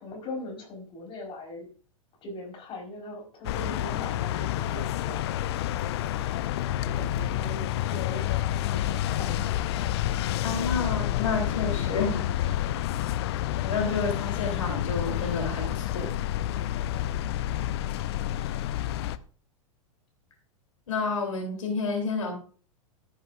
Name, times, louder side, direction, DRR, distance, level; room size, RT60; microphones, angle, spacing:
voice 1, 0.0-1.7 2.2-9.5 16.9-18.8, left 2 dB, 30° left, 1 dB, 4.6 m, -42 dB
sound 1, 3.4-19.2, left 12 dB, 50° left, 0.6 m, -29 dB
voice 2, 10.4-12.9 13.6-16.2 20.9-22.3, left 4 dB, 65° left, 1 dB, 3.5 m, -30 dB
14.0 x 10.0 x 2.6 m, 0.39 s
figure-of-eight pair, 95°, 18 cm